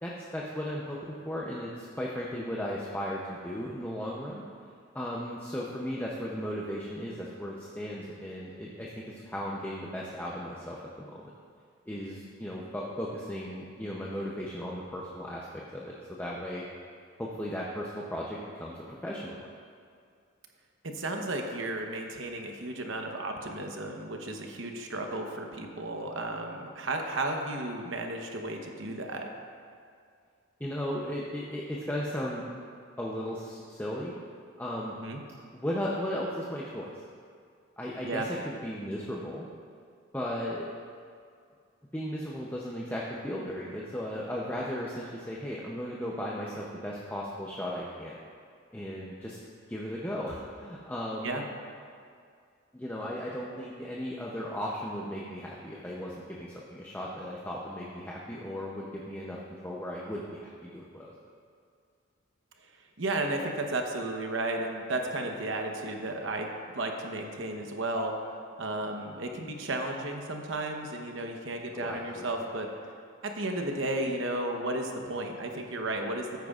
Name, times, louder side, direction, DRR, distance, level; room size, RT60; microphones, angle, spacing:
voice 1, 0.0-4.4 4.9-11.3 11.9-15.5 15.7-16.6 17.2-19.4 30.6-32.5 33.0-34.1 34.6-34.9 35.5-36.9 37.8-39.5 40.1-40.8 41.9-48.1 48.7-49.4 49.7-51.5 52.7-61.1 71.7-72.3, equal, 10° left, -4 dB, 0.6 m, -36 dB
voice 2, 20.8-29.3 35.0-35.2 38.0-38.3 51.2-51.4 63.0-66.5 66.7-68.1 68.6-72.7 73.2-76.5, right 2 dB, 65° right, 3 dB, 1.0 m, -33 dB
14.0 x 9.3 x 2.4 m, 2.3 s
head